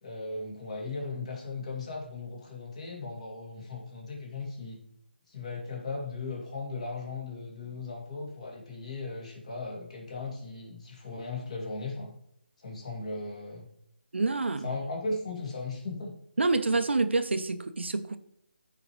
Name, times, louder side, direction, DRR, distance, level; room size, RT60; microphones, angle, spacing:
voice 1, 0.0-4.8 5.3-12.1 12.6-13.7 14.6-16.1, left 3 dB, 35° left, -1 dB, 2.6 m, -37 dB
voice 2, 14.1-14.8 16.4-18.2, right 3 dB, 85° right, 10 dB, 0.8 m, -27 dB
14.5 x 5.0 x 3.1 m, 0.72 s
figure-of-eight pair, 170°, 6 cm